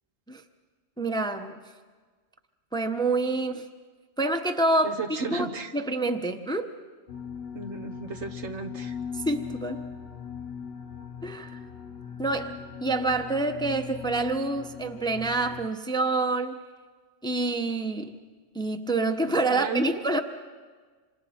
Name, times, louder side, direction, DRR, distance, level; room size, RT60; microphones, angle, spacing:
voice 1, 1.0-1.6 2.7-3.7 4.2-5.0 5.3-6.7 9.2-9.8 11.2-11.6 12.2-12.5 12.8-16.6 17.2-18.2 18.5-20.2, right 2 dB, 5° left, 6 dB, 0.8 m, -27 dB
voice 2, 4.8-5.7 7.5-9.0 19.3-20.0, right 3 dB, 75° right, 4 dB, 1.6 m, -34 dB
sound 1, 7.1-15.7, left 7 dB, 60° left, 1.1 m, -39 dB
27.0 x 26.5 x 4.3 m, 1.5 s
omnidirectional pair, 1.2 m